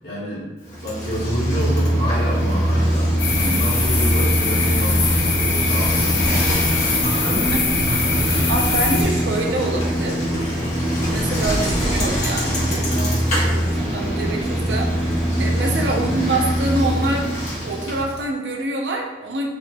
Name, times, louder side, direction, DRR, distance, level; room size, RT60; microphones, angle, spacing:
voice 1, 0.0-0.5 0.8-8.6 15.9-16.2, equal, 60° left, -7 dB, 1.4 m, -29 dB
Bicycle, 0.7-18.2, equal, 40° left, 1.2 m, -22 dB
sound 1, 3.2-9.0, left 3 dB, 85° left, 0.7 m, -22 dB
voice 2, 8.5-10.2 11.1-17.3 17.6-19.5, right 2 dB, 75° right, 1 dB, 0.6 m, -26 dB
4.3 x 2.8 x 2.3 m, 1.1 s
head